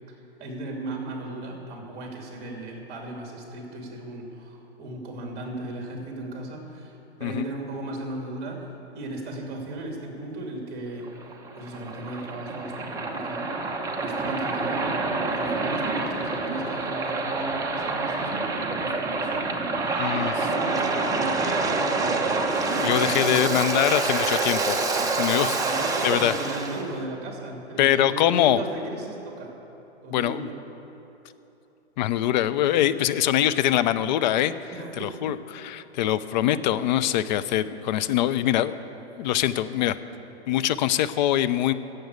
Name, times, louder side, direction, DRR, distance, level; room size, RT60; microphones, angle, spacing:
voice 1, 0.1-8.7 8.9-11.1 11.5-13.5 14.0-19.5 20.1-22.4 22.7-24.1 25.5-29.5 30.0-30.5 34.7-35.4 36.6-36.8, right 2 dB, 30° right, 0 dB, 2.9 m, -36 dB
Waves surf, 11.0-26.8, right 3 dB, 10° right, 1.0 m, -27 dB
voice 2, 20.0-20.3 22.8-24.8 25.2-25.6 26.0-26.3 27.8-28.6 30.1-30.5 32.0-34.5 35.0-38.7 39.2-40.0 40.5-41.7, left 12 dB, 40° left, 13 dB, 0.6 m, -23 dB
15.5 x 7.8 x 8.3 m, 3.0 s
hypercardioid pair, 130°, 34 cm